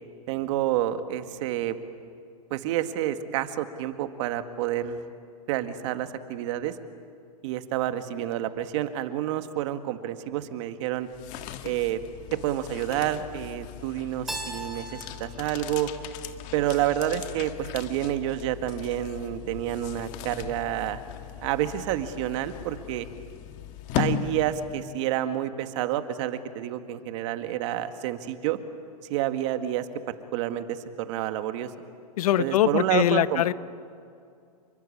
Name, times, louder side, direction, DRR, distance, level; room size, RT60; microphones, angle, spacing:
voice 1, 0.3-1.8 2.5-5.1 5.5-6.8 7.4-11.1 11.6-12.0 12.3-15.9 16.5-21.0 21.4-23.1 24.0-28.6 29.1-31.7 32.4-33.4, right 12 dB, 50° right, 9 dB, 1.9 m, -29 dB
sound 1, 11.0-25.0, left 11 dB, 40° left, 1.7 m, -38 dB
Keyboard (musical), 14.3-17.1, right 1 dB, ahead, 3.0 m, -40 dB
voice 2, 32.2-33.5, left 12 dB, 65° left, 16 dB, 1.0 m, -22 dB
29.0 x 23.5 x 8.7 m, 2.3 s
hypercardioid pair, 145°, 20 cm